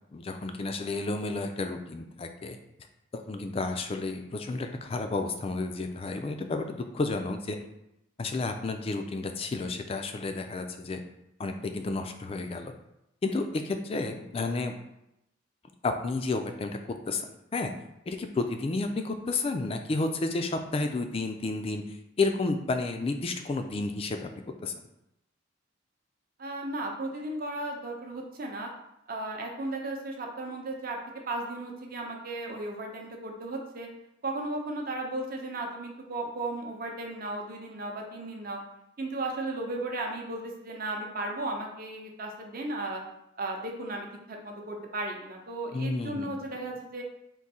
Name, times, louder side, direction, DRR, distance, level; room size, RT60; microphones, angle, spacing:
voice 1, 0.1-2.6 3.3-7.6 8.2-11.0 11.4-12.7 13.2-14.7 15.8-16.8 17.1-17.7 18.1-21.8 22.2-24.3 24.6-24.7 45.7-46.3, left 3 dB, 30° left, 6 dB, 0.3 m, -31 dB
voice 2, 26.4-28.7 29.1-31.0 31.3-33.9 34.2-38.6 39.0-43.0 43.4-47.0, right 2 dB, 45° right, 1 dB, 0.7 m, -35 dB
3.8 x 2.6 x 4.1 m, 0.84 s
head